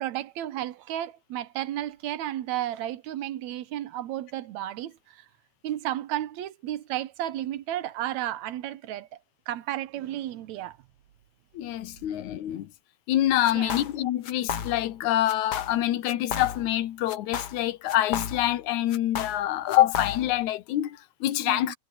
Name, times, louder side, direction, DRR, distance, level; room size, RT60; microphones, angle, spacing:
voice 1, 0.0-5.3 5.6-9.1 9.5-10.8 13.5-13.8 21.5-21.7, right 13 dB, 75° right, 2.2 m, -33 dB
voice 2, 11.5-12.7 13.1-21.7, left 13 dB, 80° left, 2.3 m, -26 dB
sound 1, 13.4-14.0 14.2-15.0 15.3-15.8 16.1-16.8 17.1-18.6 18.9-20.4, left 8 dB, 60° left, 1.1 m, -34 dB
omnidirectional pair, 3.4 m